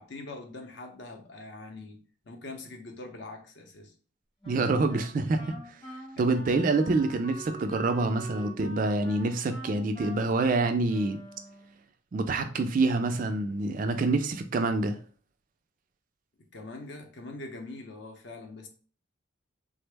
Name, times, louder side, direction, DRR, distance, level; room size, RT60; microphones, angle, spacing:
voice 1, 0.0-3.9 6.2-6.3 16.5-18.7, left 2 dB, 55° left, 0.6 m, -43 dB
Wind instrument woodwind instrument, 4.4-11.8, equal, 20° left, 0.9 m, -45 dB
voice 2, 4.5-5.4 6.2-11.2 12.1-15.0, right 3 dB, 40° right, 0.3 m, -26 dB
3.6 x 2.1 x 3.3 m
head